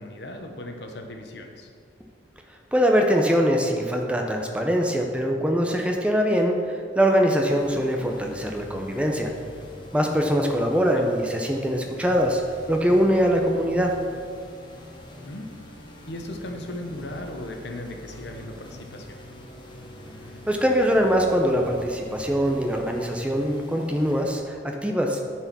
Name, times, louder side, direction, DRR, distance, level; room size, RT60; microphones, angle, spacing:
voice 1, 0.0-1.7 10.7-11.1 15.3-15.5 15.8-19.2, left 1 dB, 65° left, 4 dB, 1.0 m, -37 dB
voice 2, 2.7-9.3 9.9-12.4 12.7-13.9 20.5-25.2, equal, 5° right, 2 dB, 0.6 m, -22 dB
sound 1, 7.4-24.3, left 1 dB, 25° left, 1.1 m, -44 dB
10.0 x 4.6 x 6.0 m, 2.2 s
head